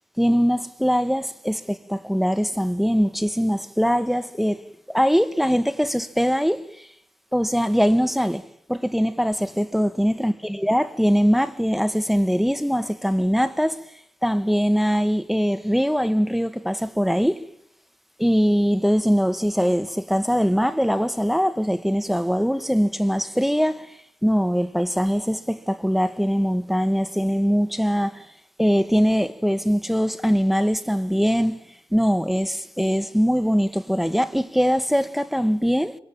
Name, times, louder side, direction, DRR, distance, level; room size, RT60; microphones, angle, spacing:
voice 1, 0.2-6.9 7.3-8.4 8.7-13.8 14.2-17.4 18.2-23.9 24.2-28.3 28.6-31.6 31.9-36.0, equal, ahead, 1.7 m, -22 dB
26.5 x 24.5 x 8.9 m
wide cardioid pair, 50°, 10 cm